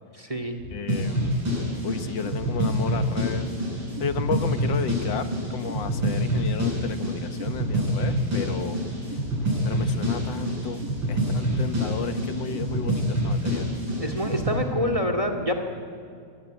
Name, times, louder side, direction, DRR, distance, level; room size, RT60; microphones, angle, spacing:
voice 1, 0.1-0.7 14.0-15.6, equal, 20° right, 6 dB, 2.0 m, -27 dB
voice 2, 0.7-1.2 1.8-3.5 4.0-8.8 9.6-13.7, left 6 dB, 75° left, 9 dB, 1.9 m, -32 dB
sound 1, 0.9-14.6, equal, 85° right, 8.7 m, -26 dB
25.5 x 20.0 x 9.4 m, 2.3 s
omnidirectional pair, 2.0 m